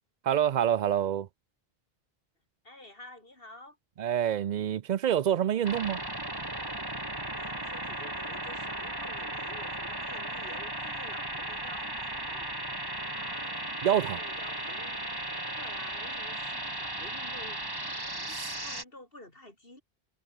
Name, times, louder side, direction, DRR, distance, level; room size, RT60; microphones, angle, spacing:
voice 1, 0.2-1.3 4.0-6.0 13.8-14.2 18.3-18.5, right 10 dB, 55° right, 0.6 m, -27 dB
voice 2, 2.6-3.8 7.4-12.5 13.1-13.6 14.1-15.0 15.6-17.6 18.1-19.8, left 1 dB, 65° left, 5.1 m, -50 dB
sound 1, 5.6-18.8, right 1 dB, 20° right, 2.8 m, -36 dB
omnidirectional pair, 1.0 m